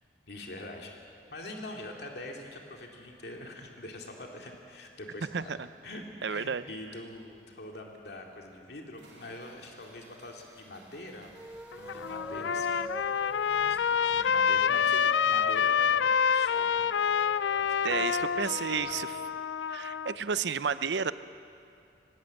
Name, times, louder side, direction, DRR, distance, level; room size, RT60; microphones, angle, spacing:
voice 1, 0.3-1.0 1.3-5.5 5.8-11.4 11.7-12.8 13.7-16.9 17.7-18.3 18.7-19.0, left 1 dB, 60° left, 1 dB, 2.4 m, -44 dB
voice 2, 6.2-6.6 17.8-19.2 19.7-21.1, right 6 dB, 70° right, 14 dB, 0.6 m, -31 dB
sound 1, 8.9-19.1, right 1 dB, 85° right, 4.6 m, -59 dB
sound 2, 11.3-19.4, right 1 dB, 5° right, 0.5 m, -46 dB
Trumpet, 11.7-20.1, left 7 dB, 85° left, 0.4 m, -27 dB
19.5 x 17.0 x 8.4 m, 2.4 s
head